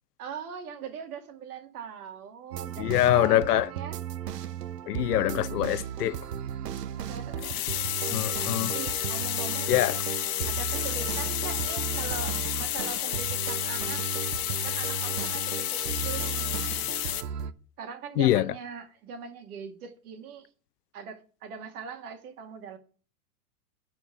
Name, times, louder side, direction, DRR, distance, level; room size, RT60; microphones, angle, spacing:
voice 1, 0.2-4.0 7.0-7.6 8.1-9.7 10.5-14.0 14.6-16.5 17.8-20.5 20.9-22.8, right 6 dB, 70° right, 2.2 m, -41 dB
sound 1, 2.5-17.5, right 8 dB, 85° right, 0.9 m, -35 dB
voice 2, 2.8-3.6 4.9-6.2 8.1-8.7 9.7-10.0 18.2-18.4, left 14 dB, 75° left, 0.7 m, -24 dB
sound 2, 7.4-17.2, left 15 dB, 55° left, 1.1 m, -31 dB
11.0 x 4.6 x 6.8 m
hypercardioid pair, 115°, 47 cm